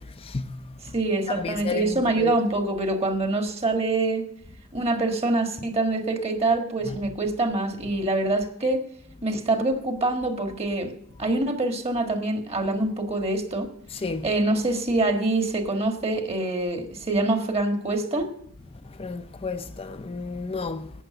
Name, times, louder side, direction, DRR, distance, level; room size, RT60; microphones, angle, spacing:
voice 1, 0.0-0.9 1.3-2.3 6.8-7.0 13.9-14.3 18.8-20.9, left 4 dB, 30° left, 0.5 m, -32 dB
voice 2, 0.9-4.2 4.7-8.8 9.2-10.9 11.2-13.7 14.2-18.3, right 2 dB, 30° right, 1.6 m, -25 dB
12.0 x 9.3 x 6.7 m
head